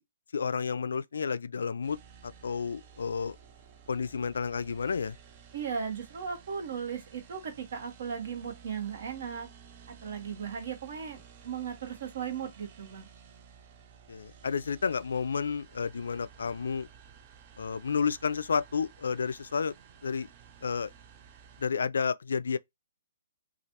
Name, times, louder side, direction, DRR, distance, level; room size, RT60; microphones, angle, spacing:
voice 1, 0.3-2.0 2.4-3.4 3.9-5.1 14.1-16.9 17.6-19.7 20.0-20.3 20.6-20.9 21.6-22.6, left 6 dB, 75° left, 0.3 m, -31 dB
sound 1, 1.8-21.7, right 7 dB, 25° right, 0.5 m, -54 dB
voice 2, 5.5-9.5 10.0-13.1, right 7 dB, 50° right, 1.3 m, -37 dB
3.1 x 2.4 x 2.8 m
hypercardioid pair, 165°, 0 cm